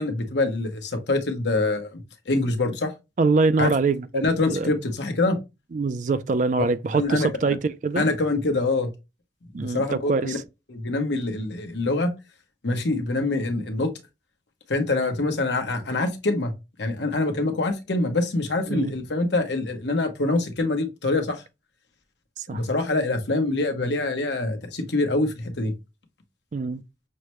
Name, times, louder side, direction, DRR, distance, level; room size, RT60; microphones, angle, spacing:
voice 1, 0.0-2.9 3.6-3.7 4.2-5.4 6.9-7.5 8.0-8.9 9.6-10.4 10.7-12.1 12.6-13.9 14.7-16.5 16.8-21.4 22.5-25.7, left 2 dB, 75° left, 1.0 m, -25 dB
voice 2, 3.2-4.7 5.7-8.0 9.5-10.4 18.7-18.9 22.5-22.6 26.5-26.8, right 4 dB, 45° right, 0.3 m, -24 dB
6.4 x 2.1 x 3.0 m
head